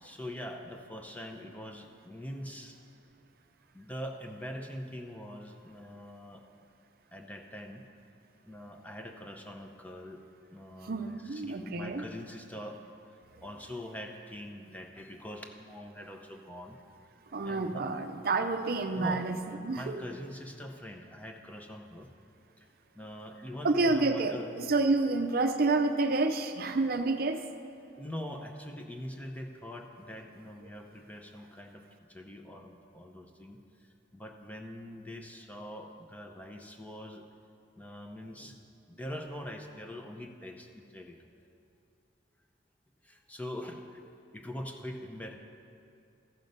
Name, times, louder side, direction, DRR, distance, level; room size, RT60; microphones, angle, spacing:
voice 1, 0.0-2.7 3.7-6.4 7.1-7.9 8.5-10.2 10.5-12.8 13.4-16.8 17.4-17.9 18.9-19.3 19.7-22.1 23.0-24.5 28.0-31.8 32.1-33.6 34.1-37.2 37.8-38.6 38.9-41.2 43.0-44.0 44.3-45.4, equal, 10° left, 3 dB, 0.6 m, -43 dB
voice 2, 10.8-12.0 17.3-19.4 19.6-20.0 23.6-27.4, right 3 dB, 50° right, 7 dB, 0.5 m, -29 dB
14.0 x 6.5 x 5.4 m, 2.6 s
head